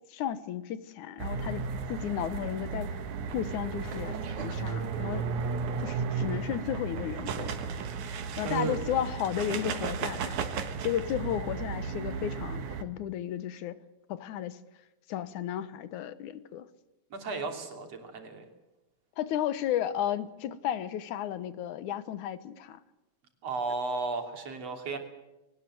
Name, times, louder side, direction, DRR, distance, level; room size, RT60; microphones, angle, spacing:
voice 1, 0.1-3.0 3.3-5.3 5.8-7.6 8.4-10.4 10.8-13.7 14.1-14.6 15.1-16.7 19.2-22.8, left 10 dB, 80° left, 2.6 m, -33 dB
sound 1, 1.2-12.8, right 5 dB, 75° right, 2.9 m, -34 dB
voice 2, 8.4-8.9 17.1-18.5 23.4-25.0, right 3 dB, 55° right, 4.1 m, -34 dB
21.5 x 19.0 x 7.8 m
omnidirectional pair, 3.4 m